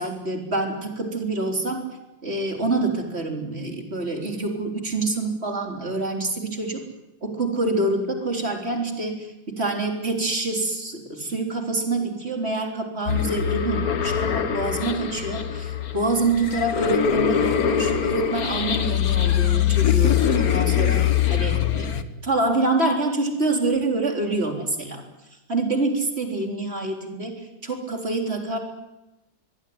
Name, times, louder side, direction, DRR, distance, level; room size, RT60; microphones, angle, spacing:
voice 1, 0.0-1.9 2.2-6.8 7.2-21.0 21.3-21.9 22.2-25.0 25.5-28.6, right 2 dB, 30° right, 2 dB, 4.2 m, -26 dB
sound 1, 13.1-22.0, left 9 dB, 55° left, 1.7 m, -23 dB
24.5 x 21.5 x 9.7 m, 0.97 s
omnidirectional pair, 2.0 m